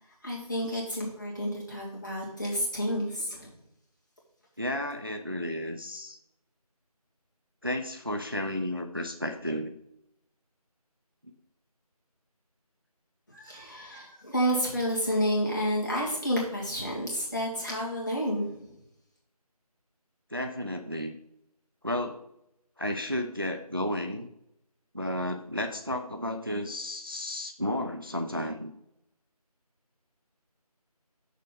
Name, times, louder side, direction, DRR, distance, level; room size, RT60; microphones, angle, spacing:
voice 1, 0.2-3.5 13.3-18.8, equal, 30° left, -3 dB, 1.9 m, -30 dB
voice 2, 4.6-6.2 7.6-9.8 20.3-21.2 21.8-22.2 22.8-24.3 24.9-28.7, left 1 dB, 35° right, 6 dB, 0.4 m, -32 dB
6.4 x 6.2 x 4.1 m, 0.79 s
figure-of-eight pair, 170°, 20 cm